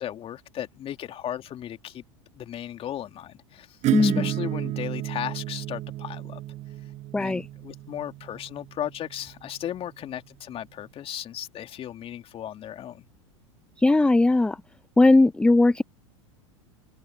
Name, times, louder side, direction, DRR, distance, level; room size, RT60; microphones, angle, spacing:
voice 1, 0.0-2.0 2.3-6.4 7.2-13.0, left 11 dB, 35° left, 2.6 m, -36 dB
Acoustic guitar / Strum, 3.8-9.3, right 15 dB, 45° right, 7.9 m, -32 dB
voice 2, 3.9-4.3 7.1-7.5 13.8-14.6 15.0-15.8, left 2 dB, 5° left, 0.6 m, -18 dB
hypercardioid pair, 90°, 16 cm